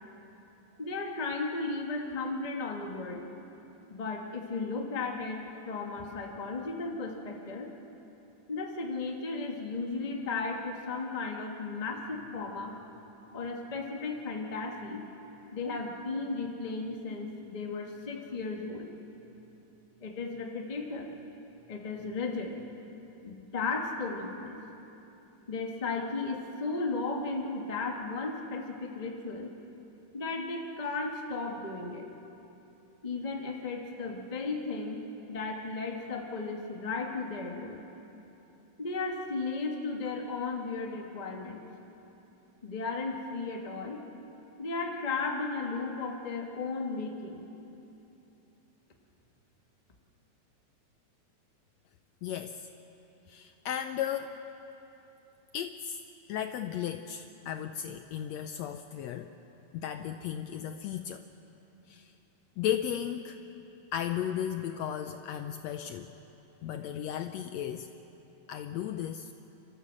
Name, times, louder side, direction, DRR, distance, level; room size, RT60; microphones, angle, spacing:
voice 1, 0.8-3.3 3.9-7.7 8.5-12.8 13.3-15.0 15.5-18.9 20.0-21.1 21.7-22.6 23.2-24.6 25.5-29.5 30.1-32.1 33.0-35.0 35.3-37.8 38.8-41.6 42.6-44.0 44.6-47.5, left 3 dB, 25° left, 2 dB, 0.9 m, -35 dB
voice 2, 52.2-52.7 53.3-54.4 55.5-56.0 56.3-59.3 59.7-61.2 61.9-62.1 62.6-63.4 63.9-66.1 66.6-67.9 68.5-69.3, left 10 dB, 75° left, 8 dB, 1.6 m, -35 dB
29.0 x 13.5 x 7.5 m, 3.0 s
omnidirectional pair, 3.5 m